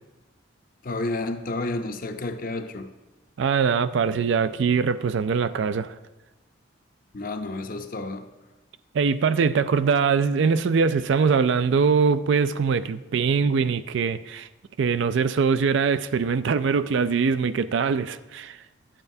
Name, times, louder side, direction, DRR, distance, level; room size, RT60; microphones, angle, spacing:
voice 1, 0.8-2.9 7.1-8.3, left 2 dB, 45° left, 0.6 m, -30 dB
voice 2, 3.4-5.9 8.9-14.5 14.8-18.6, right 5 dB, 60° right, 0.3 m, -22 dB
13.0 x 8.9 x 2.7 m
head